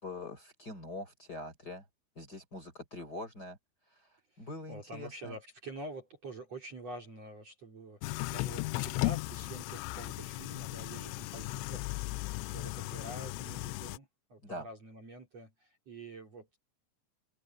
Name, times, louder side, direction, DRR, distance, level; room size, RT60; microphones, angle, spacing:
voice 1, 0.0-1.8 2.1-3.6 4.4-5.4 14.4-14.7, left 2 dB, 20° left, 4.4 m, -43 dB
voice 2, 4.3-16.6, right 2 dB, 35° right, 4.5 m, -47 dB
sound 1, 8.0-14.0, left 21 dB, 85° left, 2.8 m, -36 dB
omnidirectional pair, 5.8 m